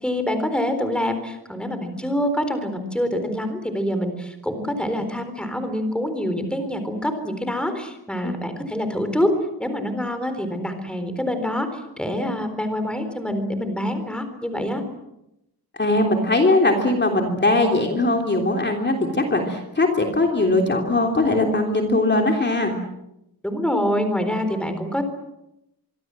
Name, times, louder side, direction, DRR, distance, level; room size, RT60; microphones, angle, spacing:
voice 1, 0.0-9.3 9.6-14.8 23.4-25.0, equal, 5° left, 8 dB, 4.0 m, -26 dB
voice 2, 15.8-22.7, left 2 dB, 30° left, 2 dB, 3.3 m, -20 dB
25.5 x 24.5 x 7.7 m, 0.86 s
wide cardioid pair, 175°, 38 cm